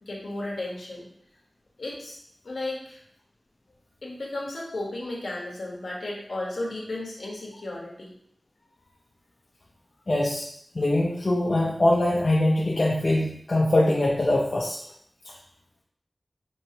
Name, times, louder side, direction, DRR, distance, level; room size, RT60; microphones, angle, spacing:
voice 1, 0.0-1.1 1.8-2.2 2.4-3.0 4.0-8.1, left 2 dB, 75° left, -3 dB, 1.3 m, -34 dB
voice 2, 10.1-10.5 10.7-14.8, left 1 dB, 50° left, -4 dB, 0.6 m, -22 dB
4.6 x 3.3 x 2.8 m, 0.65 s
wide cardioid pair, 75°, 0 cm